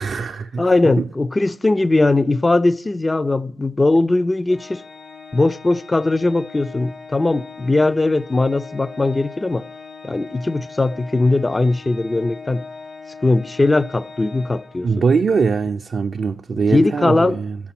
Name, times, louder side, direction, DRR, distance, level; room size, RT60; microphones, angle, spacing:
voice 1, 0.0-0.7 1.0-1.1 14.8-17.6, right 5 dB, 55° right, 0.3 m, -21 dB
voice 2, 0.6-4.8 5.3-9.7 10.0-12.7 13.2-14.9 16.7-17.4, left 2 dB, 25° left, 0.3 m, -19 dB
Organ, 4.5-15.2, left 4 dB, 45° left, 1.0 m, -39 dB
6.7 x 6.0 x 5.8 m
supercardioid pair, 45°, 0 cm